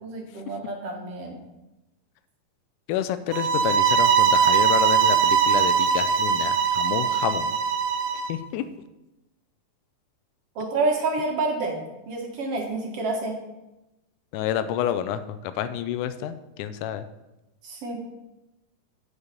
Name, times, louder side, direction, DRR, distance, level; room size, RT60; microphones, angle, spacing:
voice 1, 0.0-1.4 10.6-13.4 17.6-18.0, right 3 dB, 55° right, 1 dB, 2.1 m, -28 dB
voice 2, 2.9-7.5 8.3-8.6 14.3-17.1, left 10 dB, 90° left, 11 dB, 2.1 m, -29 dB
sound 1, 3.3-8.3, right 7 dB, 85° right, 2.3 m, -21 dB
8.2 x 7.1 x 5.2 m, 0.97 s
omnidirectional pair, 3.5 m